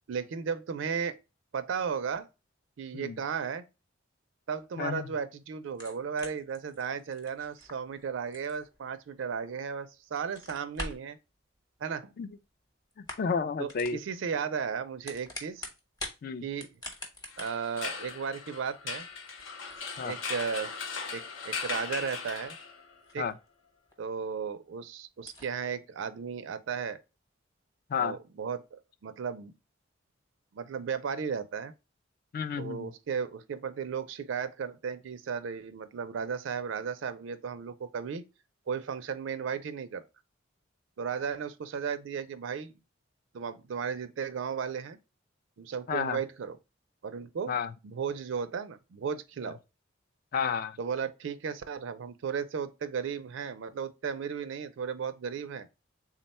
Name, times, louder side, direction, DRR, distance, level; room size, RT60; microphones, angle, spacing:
voice 1, 0.1-1.1 1.5-2.3 2.8-3.6 4.5-11.2 11.8-12.1 13.6-15.7 16.4-16.7 17.4-19.1 20.0-20.7 21.1-22.6 23.1-23.3 24.0-27.0 28.0-29.5 30.5-31.7 32.6-38.2 38.7-40.0 41.0-42.7 43.3-45.0 45.6-46.6 47.0-47.6 47.8-49.6 50.8-55.7, right 6 dB, 65° right, 0.4 m, -35 dB
voice 2, 4.8-5.1 12.2-12.3 13.0-14.0 16.2-16.4 20.0-20.2 23.2-23.3 27.9-28.2 32.3-32.9 45.9-46.2 47.5-47.7 50.3-50.8, left 6 dB, 50° left, 0.3 m, -31 dB
sound 1, 5.7-9.7 10.1-11.1 12.2-12.6 12.9-13.4 13.7-14.0 14.8-16.2 16.5-23.5 23.9-24.0 24.4-24.5 24.7-24.8 25.2-25.5, left 1 dB, 20° left, 0.9 m, -45 dB
sound 2, 17.3-23.0, left 5 dB, 75° left, 0.7 m, -38 dB
3.6 x 2.2 x 4.1 m
head